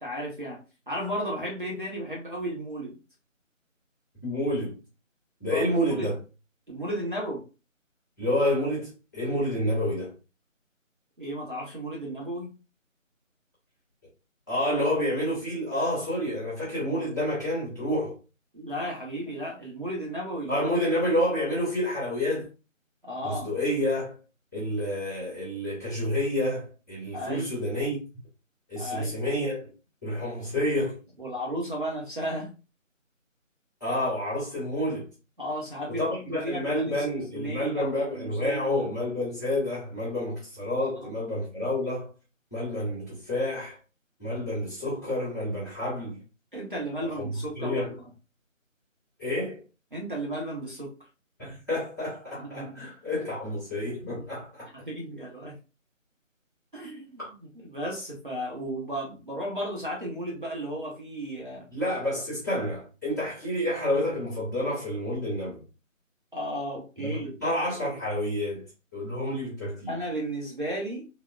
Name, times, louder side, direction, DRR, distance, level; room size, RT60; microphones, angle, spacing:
voice 1, 0.0-3.0 5.5-6.1 6.7-7.4 11.2-12.5 18.5-20.8 23.0-23.5 27.1-27.5 28.7-29.2 31.2-32.5 35.4-36.0 36.3-37.0 37.3-38.9 46.5-47.9 49.9-50.9 52.5-52.9 54.0-54.2 54.7-55.6 56.7-57.2 57.5-61.7 66.3-67.3 69.9-71.1, equal, 40° right, 0.7 m, -34 dB
voice 2, 4.2-4.8 5.4-6.1 8.2-10.1 14.5-18.1 20.5-22.5 23.2-24.2 24.5-28.0 28.7-29.7 30.0-31.0 33.8-35.1 35.9-42.1 42.5-43.8 44.2-46.2 47.2-47.3 47.6-48.0 49.2-49.6 51.4-54.7 57.2-57.3 61.7-65.6 67.0-68.6 68.9-69.9, left 1 dB, 15° left, 1.1 m, -29 dB
3.6 x 2.0 x 2.3 m
figure-of-eight pair, 170°, 40 cm